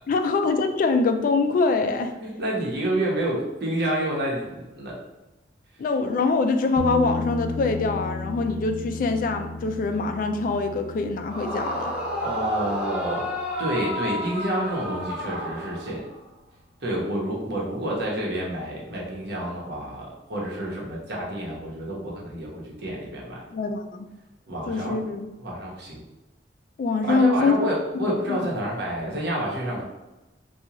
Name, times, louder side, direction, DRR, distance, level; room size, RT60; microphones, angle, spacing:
voice 1, 0.1-2.1 5.8-11.9 23.5-24.1 24.7-25.3 26.8-27.6 28.0-28.5, left 3 dB, 50° left, 6 dB, 0.3 m, -24 dB
voice 2, 2.2-4.9 12.2-13.3 13.6-16.0 16.8-23.4 24.5-25.0 25.4-26.0 27.0-29.8, right 1 dB, 60° right, -3 dB, 1.0 m, -29 dB
sound 1, 6.8-14.4 17.4-17.5, left 2 dB, 80° right, 0.5 m, -34 dB
Yell / Screaming, 11.3-16.2, left 1 dB, 5° right, 0.6 m, -31 dB
3.7 x 2.3 x 2.9 m, 1.0 s
head